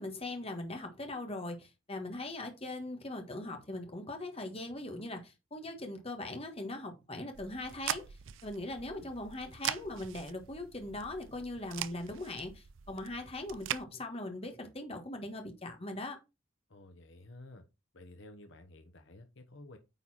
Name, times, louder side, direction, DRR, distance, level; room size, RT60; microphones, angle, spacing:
voice 1, 0.0-8.0 8.4-16.2, left 2 dB, 30° left, 1.5 m, -40 dB
sound 1, 7.3-13.8, right 10 dB, 65° right, 0.5 m, -42 dB
voice 2, 16.7-17.6 17.9-19.8, left 2 dB, 60° left, 1.1 m, -52 dB
9.2 x 4.2 x 4.2 m
head